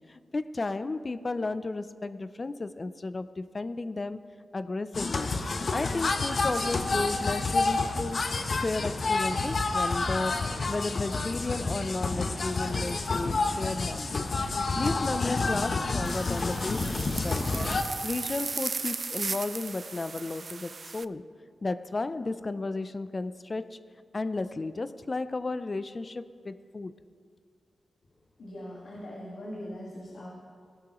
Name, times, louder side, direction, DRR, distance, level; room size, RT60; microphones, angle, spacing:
voice 1, 0.1-4.2 4.5-5.3 5.7-14.3 14.8-16.8 17.2-17.4 18.0-21.2 21.6-23.8 24.1-26.9, left 3 dB, 35° left, 13 dB, 0.4 m, -33 dB
sound 1, 4.9-17.8, left 3 dB, 55° left, 0.8 m, -29 dB
sound 2, 16.0-21.0, right 4 dB, 50° right, 0.3 m, -36 dB
voice 2, 28.4-30.3, equal, 85° left, -5 dB, 1.7 m, -41 dB
17.0 x 12.5 x 3.0 m, 2.1 s
cardioid pair, 85°, 0 cm